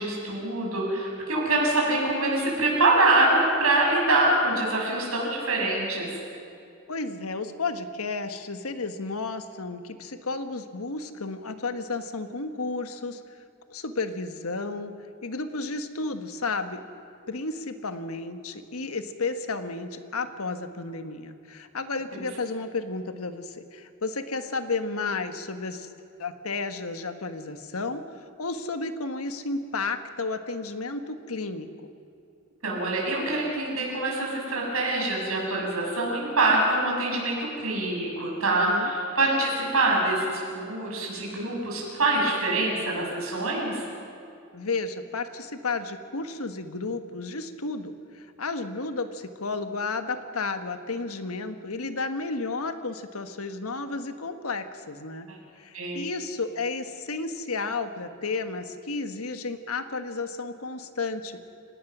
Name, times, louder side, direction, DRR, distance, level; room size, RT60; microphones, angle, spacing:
voice 1, 0.0-6.1 32.6-43.8 55.3-55.4 55.7-56.0, right 2 dB, 75° right, -2 dB, 7.2 m, -25 dB
voice 2, 6.9-13.4 13.7-14.9 15.2-16.8 17.3-25.9 26.2-31.9 38.6-38.9 44.5-55.3 55.6-61.4, left 3 dB, 90° left, 9 dB, 1.4 m, -32 dB
29.5 x 18.0 x 6.1 m, 2.5 s
head